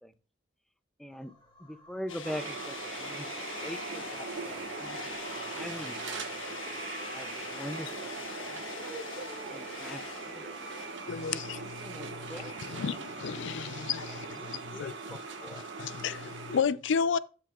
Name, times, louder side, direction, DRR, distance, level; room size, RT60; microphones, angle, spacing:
voice 1, 1.0-1.3 1.6-6.2 7.1-8.6 9.5-10.6 11.2-12.9 13.5-15.7, equal, ahead, 0.4 m, -44 dB
sound 1, 1.1-7.3, left 2 dB, 25° left, 1.8 m, -59 dB
sound 2, 2.1-10.9, left 5 dB, 85° left, 1.2 m, -43 dB
sound 3, 2.2-16.6, right 4 dB, 70° right, 1.4 m, -41 dB
voice 2, 8.5-12.6, right 2 dB, 45° right, 2.7 m, -49 dB
voice 3, 11.1-15.2 15.5-17.2, left 6 dB, 65° left, 0.4 m, -33 dB
13.0 x 7.6 x 2.4 m
head